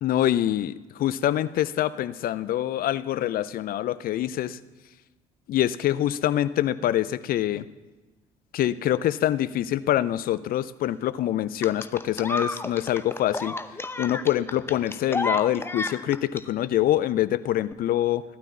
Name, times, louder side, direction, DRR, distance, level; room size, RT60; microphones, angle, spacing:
voice 1, 0.0-4.6 5.5-7.6 8.5-13.6 14.0-18.2, left 12 dB, 50° left, 17 dB, 0.6 m, -25 dB
sound 1, 11.6-16.4 17.6-17.7, left 2 dB, 10° left, 0.8 m, -31 dB
16.5 x 12.0 x 4.1 m, 1.2 s
hypercardioid pair, 55°, 19 cm